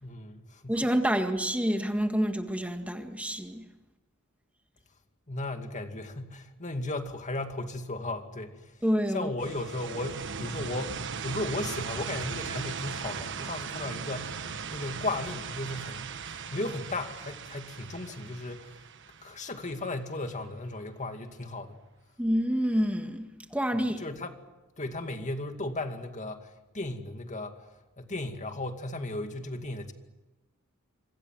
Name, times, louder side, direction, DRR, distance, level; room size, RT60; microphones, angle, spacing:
voice 1, 0.0-0.8 5.3-8.7 9.1-18.8 19.2-21.8 24.0-24.4 24.8-27.7 28.0-29.9, left 2 dB, 35° left, 2.3 m, -36 dB
voice 2, 0.7-3.6 8.8-9.3 22.2-24.0, equal, 5° right, 1.8 m, -28 dB
sound 1, 9.4-20.1, right 6 dB, 60° right, 1.3 m, -38 dB
27.0 x 25.5 x 7.7 m
head